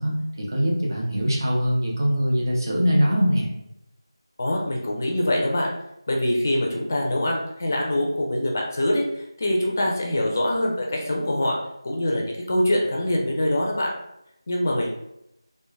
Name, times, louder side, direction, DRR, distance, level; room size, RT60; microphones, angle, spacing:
voice 1, 0.0-3.5, equal, 45° right, -3 dB, 0.8 m, -22 dB
voice 2, 4.4-5.7 6.1-9.0 9.4-11.6 11.8-13.9 14.5-14.9, left 1 dB, 30° left, -1 dB, 0.4 m, -24 dB
3.0 x 2.2 x 2.3 m, 0.82 s
figure-of-eight pair, 170°, 3 cm